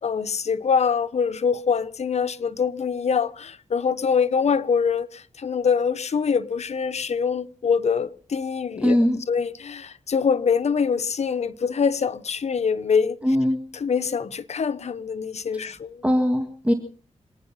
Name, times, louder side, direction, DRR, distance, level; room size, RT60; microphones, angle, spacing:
voice 1, 0.0-9.0 9.3-13.2 13.7-16.0, left 6 dB, 65° left, 1.0 m, -24 dB
voice 2, 8.8-9.2 13.2-13.6 16.0-16.7, equal, 10° right, 1.9 m, -20 dB
27.0 x 9.6 x 5.6 m
cardioid pair, 75°, 12 cm